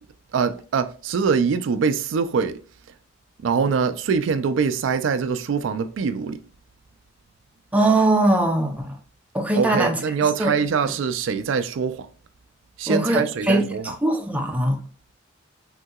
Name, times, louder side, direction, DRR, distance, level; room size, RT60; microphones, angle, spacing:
voice 1, 0.3-2.6 3.4-6.4 9.6-12.1 12.8-13.9, right 5 dB, 70° right, 0.3 m, -23 dB
voice 2, 7.7-9.0 9.3-10.0 10.4-10.5 12.9-14.8, right 2 dB, 5° right, 0.5 m, -21 dB
3.6 x 2.7 x 2.3 m
head